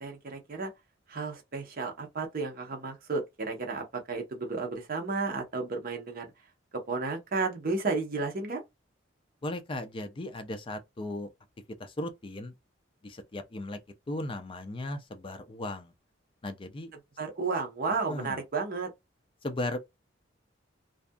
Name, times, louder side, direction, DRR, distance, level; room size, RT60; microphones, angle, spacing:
voice 1, 0.0-0.7 1.1-6.3 6.9-8.6 17.2-18.9, right 4 dB, 50° right, 0.8 m, -32 dB
voice 2, 9.4-11.3 11.8-12.5 13.0-13.8 14.1-15.9 16.4-16.9 18.1-18.4 19.4-19.8, left 1 dB, 25° left, 0.4 m, -36 dB
2.6 x 2.4 x 2.2 m
head